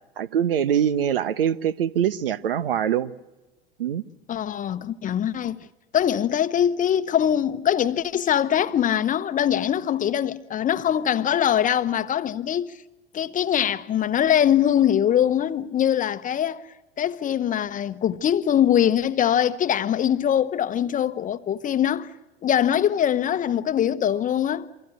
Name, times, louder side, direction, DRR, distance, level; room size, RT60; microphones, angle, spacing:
voice 1, 0.2-3.1 3.8-4.0, right 9 dB, 70° right, 1.1 m, -23 dB
voice 2, 4.3-5.7 5.9-12.8 13.1-16.6 17.0-22.1 22.4-24.7, left 10 dB, 25° left, 1.0 m, -22 dB
28.5 x 25.0 x 6.4 m
figure-of-eight pair, 80°, 29 cm